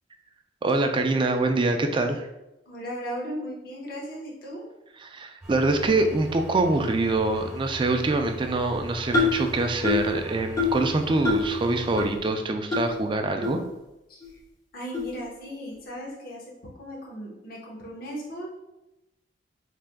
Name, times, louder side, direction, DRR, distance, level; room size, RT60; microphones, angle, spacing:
voice 1, 0.6-2.3 5.0-13.6, right 2 dB, 30° right, 5 dB, 0.4 m, -24 dB
voice 2, 2.7-4.6 14.1-14.4 14.7-16.4 16.8-18.5, equal, 55° left, -3 dB, 1.0 m, -36 dB
sound 1, 5.4-12.0, right 1 dB, 5° right, 1.1 m, -40 dB
sound 2, 9.1-9.4 9.8-10.1 10.6-10.8 11.2-11.5 12.0-12.1 12.7-12.8 13.4-13.5 14.2-14.3 14.9-15.1, left 4 dB, 20° left, 0.8 m, -24 dB
4.8 x 3.3 x 2.2 m, 0.92 s
head